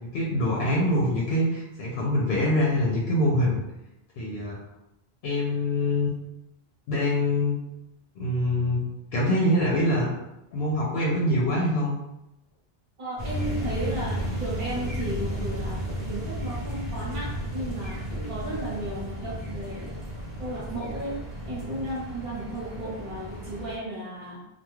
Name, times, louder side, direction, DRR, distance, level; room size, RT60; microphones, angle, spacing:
voice 1, 0.0-3.6 4.2-4.6 5.2-6.1 6.9-7.6 8.2-8.8 9.1-10.1 10.5-11.9, left 1 dB, 80° left, -4 dB, 0.8 m, -24 dB
voice 2, 13.0-19.9 20.4-21.2 21.5-24.4, right 1 dB, 55° right, -6 dB, 1.0 m, -34 dB
sound 1, 13.2-23.8, equal, 25° right, 1.0 m, -33 dB
2.3 x 2.3 x 3.1 m, 0.90 s
omnidirectional pair, 1.0 m